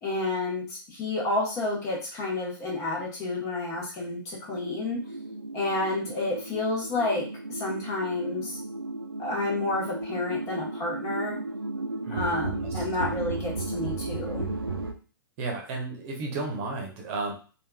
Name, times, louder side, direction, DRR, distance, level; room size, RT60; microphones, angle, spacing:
voice 1, 0.0-5.0 5.5-8.6 9.2-11.4 12.1-14.5, left 2 dB, 25° left, -3 dB, 1.2 m, -30 dB
sound 1, 4.5-14.9, right 3 dB, 85° right, 0.5 m, -34 dB
voice 2, 12.0-12.8 15.4-17.3, right 3 dB, 35° right, 1 dB, 1.0 m, -33 dB
3.4 x 2.5 x 2.3 m, 0.37 s
figure-of-eight pair, 115°, 12 cm